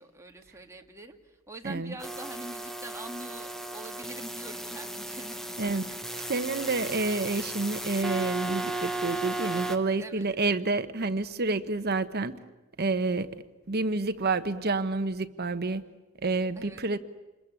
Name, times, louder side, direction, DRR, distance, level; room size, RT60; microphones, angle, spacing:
voice 1, 0.0-5.8 10.0-10.6 16.6-16.8, right 1 dB, 15° right, 3 dB, 2.0 m, -44 dB
voice 2, 1.6-1.9 5.6-5.9 6.3-12.4 12.8-13.4 13.7-15.8 16.2-17.0, right 3 dB, 50° right, 10 dB, 1.2 m, -29 dB
sound 1, 2.0-9.8, right 2 dB, ahead, 1.5 m, -35 dB
28.0 x 21.5 x 9.8 m, 1.1 s
head